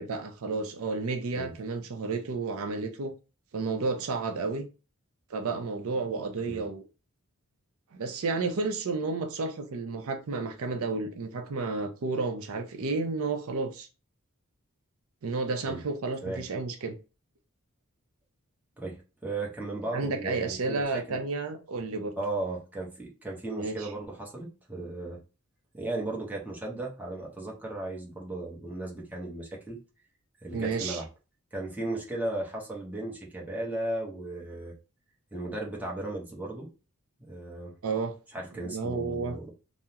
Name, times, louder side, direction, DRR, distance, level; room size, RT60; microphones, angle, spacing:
voice 1, 0.0-3.1 3.5-4.7 5.3-6.8 7.9-13.9 15.2-17.0 19.9-22.1 23.5-23.9 30.5-31.0 37.8-38.1 38.6-39.4, right 3 dB, 70° right, 0.5 m, -31 dB
voice 2, 18.8-20.8 21.1-21.2 22.2-25.2 25.7-29.8 30.4-31.0 31.5-34.7 35.3-36.7 37.3-37.7 38.3-39.5, right 2 dB, 10° right, 0.8 m, -36 dB
3.5 x 2.0 x 2.8 m
head